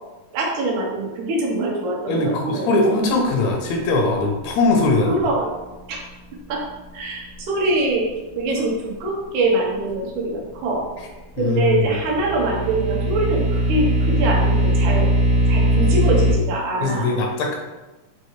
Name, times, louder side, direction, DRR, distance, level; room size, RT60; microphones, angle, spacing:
voice 1, 0.3-2.7 5.1-5.5 5.9-6.0 6.5-6.6 6.9-8.1 8.4-10.8 11.4-15.1 15.5-17.1, right 2 dB, 85° right, -1 dB, 2.2 m, -23 dB
voice 2, 2.1-5.3 11.4-11.9 16.8-17.6, left 2 dB, 75° left, 1 dB, 1.8 m, -20 dB
sound 1, 11.8-16.3, right 1 dB, 70° right, 1.8 m, -19 dB
5.7 x 2.4 x 3.0 m, 1.1 s
omnidirectional pair, 3.4 m